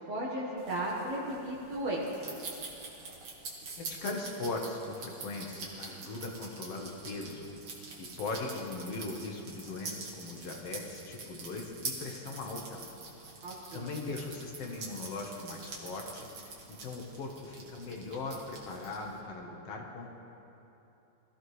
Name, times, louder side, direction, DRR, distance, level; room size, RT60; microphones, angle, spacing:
voice 1, 0.1-2.4 13.4-14.1, right 1 dB, 65° right, -5 dB, 2.5 m, -35 dB
sound 1, 0.6-19.2, right 3 dB, 50° right, 2.5 m, -45 dB
voice 2, 3.8-7.5 8.0-12.9 13.7-20.1, left 3 dB, 60° left, 1 dB, 2.0 m, -39 dB
21.5 x 14.5 x 3.2 m, 3.0 s
omnidirectional pair, 3.4 m